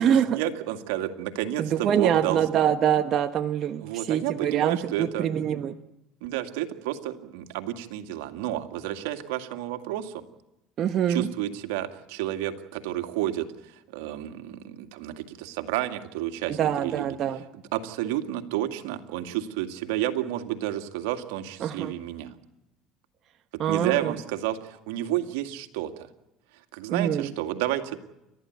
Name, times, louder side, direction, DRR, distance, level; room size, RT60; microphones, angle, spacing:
voice 1, 0.0-2.6 3.8-5.3 6.2-10.2 11.1-17.2 17.5-22.3 23.7-26.1 26.7-28.0, right 13 dB, 85° right, 7 dB, 2.2 m, -31 dB
voice 2, 1.6-5.8 10.8-11.3 16.5-17.4 21.6-21.9 23.6-24.1 26.9-27.3, right 9 dB, 50° right, 8 dB, 1.1 m, -25 dB
29.5 x 13.5 x 9.5 m, 0.89 s
supercardioid pair, 105°, 0 cm